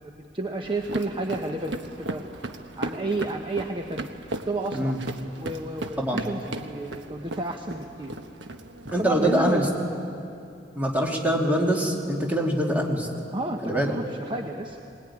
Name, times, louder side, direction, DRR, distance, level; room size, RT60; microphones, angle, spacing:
voice 1, 0.0-2.2 2.8-4.1 4.5-4.9 5.4-8.1 9.0-9.7 13.3-14.8, right 2 dB, 30° right, 3 dB, 1.0 m, -31 dB
sound 1, 0.6-9.7, right 2 dB, 80° right, 1.3 m, -37 dB
voice 2, 8.9-9.7 10.7-13.1 13.6-13.9, equal, 10° right, -1 dB, 2.8 m, -24 dB
21.5 x 20.0 x 9.9 m, 2.7 s
head